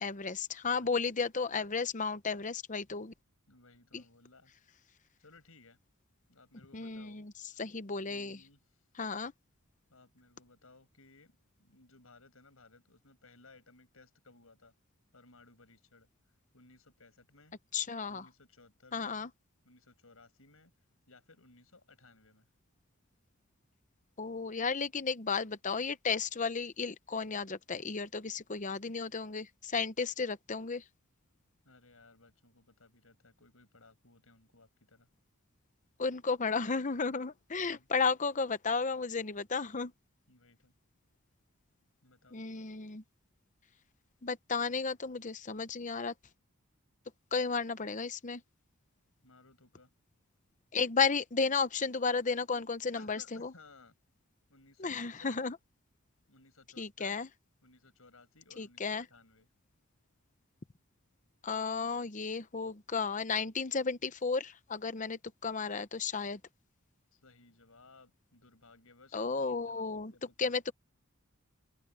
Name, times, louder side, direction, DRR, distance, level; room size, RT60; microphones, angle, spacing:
voice 1, 0.0-3.1 3.9-4.0 6.7-7.3 7.6-8.4 9.0-9.3 17.7-18.3 18.9-19.3 24.2-30.8 36.0-39.9 42.3-43.0 44.2-46.1 47.3-48.4 50.7-53.5 54.8-55.6 56.8-57.3 58.6-59.1 61.4-66.4 69.1-70.1 70.4-70.7, left 5 dB, 35° left, 0.8 m, -33 dB
voice 2, 0.6-1.1 3.5-4.5 5.2-5.8 6.3-7.3 8.0-8.8 9.9-14.7 15.1-16.1 16.5-17.5 18.1-19.3 19.6-20.7 21.1-22.5 31.6-35.1 37.5-37.9 40.3-40.7 42.0-42.4 49.2-49.9 52.9-53.9 54.5-55.4 56.3-57.2 57.6-59.5 67.1-70.6, left 3 dB, 70° left, 5.9 m, -60 dB
open air
head